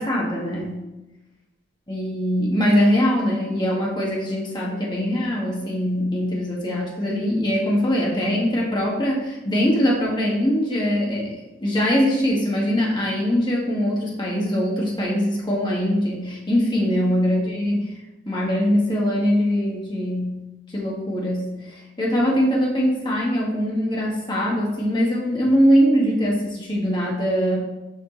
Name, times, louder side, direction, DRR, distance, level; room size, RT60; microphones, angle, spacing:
voice 1, 0.0-0.8 1.9-17.9 18.2-20.4 20.7-27.6, equal, 25° left, -4 dB, 1.6 m, -22 dB
7.6 x 5.2 x 3.9 m, 1.0 s
head